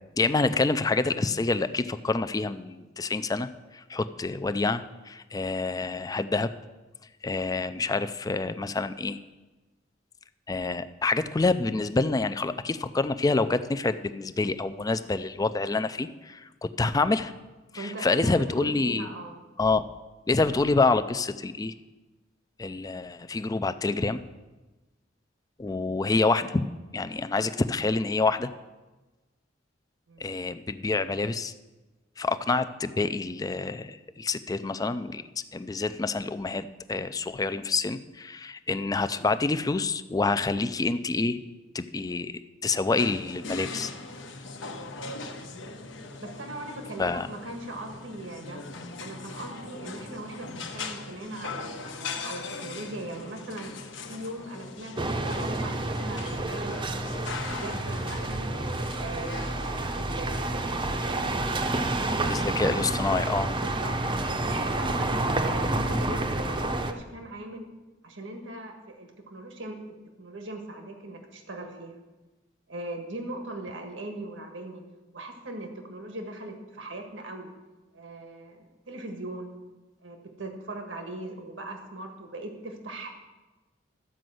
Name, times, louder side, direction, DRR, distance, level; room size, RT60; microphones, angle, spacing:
voice 1, 0.2-6.5 7.2-9.2 10.5-17.3 17.7-19.1 19.6-19.9 20.3-21.7 22.6-24.2 25.6-26.7 26.9-28.5 30.2-31.5 32.2-35.2 35.5-41.4 41.7-43.9 47.0-47.3 62.3-63.5, left 3 dB, 20° left, 11 dB, 0.4 m, -27 dB
voice 2, 17.8-19.3 30.1-30.3 46.2-48.6 49.0-53.7 54.0-57.1 57.4-58.5 59.0-62.3 63.6-67.7 68.0-69.8 70.2-71.9 72.7-74.8 75.1-77.5 77.9-79.6 80.0-83.1, right 2 dB, 85° right, 3 dB, 1.6 m, -39 dB
sound 1, 42.9-60.0, left 3 dB, 80° left, 1.0 m, -40 dB
sound 2, 55.0-66.9, right 2 dB, 25° right, 0.7 m, -29 dB
12.5 x 5.1 x 7.7 m, 1.2 s
head